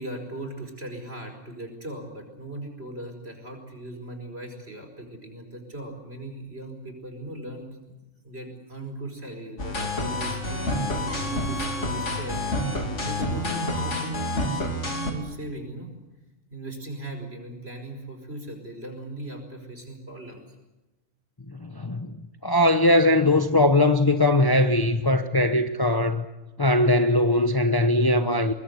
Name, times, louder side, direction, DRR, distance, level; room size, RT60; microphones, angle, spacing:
voice 1, 0.0-7.8 8.2-12.5 13.0-14.5 15.0-16.0 16.5-20.4 25.3-25.5, right 1 dB, 50° right, 5.2 m, -38 dB
sound 1, 9.6-15.1, left 1 dB, 60° left, 3.3 m, -28 dB
voice 2, 21.5-22.1 22.4-26.2 26.6-28.5, left 1 dB, 20° left, 0.9 m, -20 dB
23.5 x 21.0 x 8.0 m
omnidirectional pair, 1.4 m